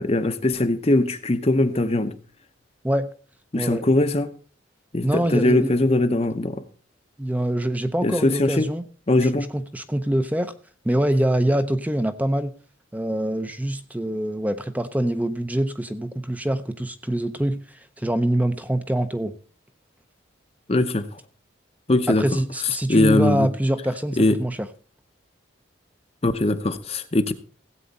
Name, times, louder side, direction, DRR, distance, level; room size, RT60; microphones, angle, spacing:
voice 1, 0.0-2.2 3.5-4.3 4.9-6.6 8.0-8.7 9.1-9.5 20.7-21.2 21.9-22.3 22.9-23.5 24.2-24.4 26.2-27.3, left 2 dB, 30° left, 9 dB, 0.7 m, -21 dB
voice 2, 3.5-3.9 5.0-5.7 7.2-8.8 9.3-10.5 10.8-12.5 12.9-19.3 22.1-24.7, right 1 dB, 10° right, 10 dB, 0.6 m, -24 dB
16.5 x 8.4 x 4.1 m, 0.39 s
head